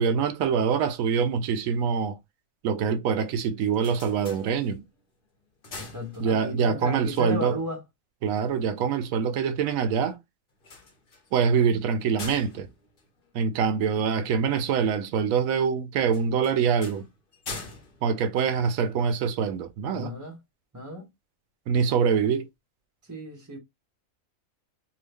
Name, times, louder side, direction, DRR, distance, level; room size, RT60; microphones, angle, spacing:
voice 1, 0.0-2.2 2.6-4.8 6.2-7.6 8.2-10.2 11.3-12.7 13.3-17.1 18.0-20.1 21.7-22.5, right 6 dB, 90° right, 1.0 m, -24 dB
sound 1, 3.5-5.0 5.4-6.7 10.5-14.0 16.1-19.1, left 3 dB, 45° left, 0.9 m, -44 dB
voice 2, 5.8-7.8 19.9-20.4 20.7-21.1 23.0-23.6, left 1 dB, 15° right, 0.7 m, -34 dB
2.8 x 2.6 x 3.4 m
omnidirectional pair, 1.4 m